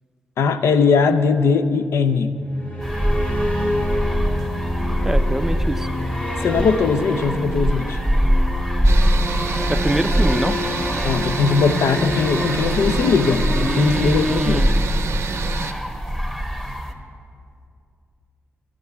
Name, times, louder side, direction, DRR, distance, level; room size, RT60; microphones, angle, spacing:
voice 1, 0.4-2.4 6.4-8.0 11.0-14.7, left 5 dB, 85° left, 10 dB, 0.5 m, -19 dB
sound 1, 2.4-15.2, equal, 35° left, 1.5 m, -28 dB
sound 2, 2.8-16.9, equal, 5° left, 1.1 m, -23 dB
voice 2, 5.0-5.9 9.7-10.6 13.5-14.8, right 1 dB, 10° right, 11 dB, 0.4 m, -24 dB
sound 3, 8.8-15.7, right 5 dB, 75° right, 0.5 m, -29 dB
12.0 x 6.6 x 6.9 m, 2.4 s
cardioid pair, 75°, 5 cm